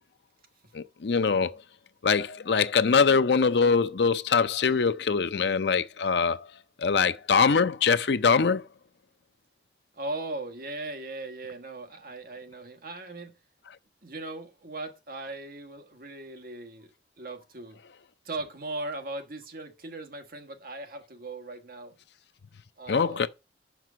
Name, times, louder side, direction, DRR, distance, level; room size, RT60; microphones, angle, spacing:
voice 1, 0.7-1.6 2.0-6.5 6.8-8.7 22.9-23.3, left 5 dB, 65° left, 0.5 m, -23 dB
voice 2, 9.9-13.3 14.0-17.8 18.2-21.9 22.8-23.3, right 2 dB, 50° right, 1.3 m, -38 dB
6.0 x 6.0 x 6.0 m
head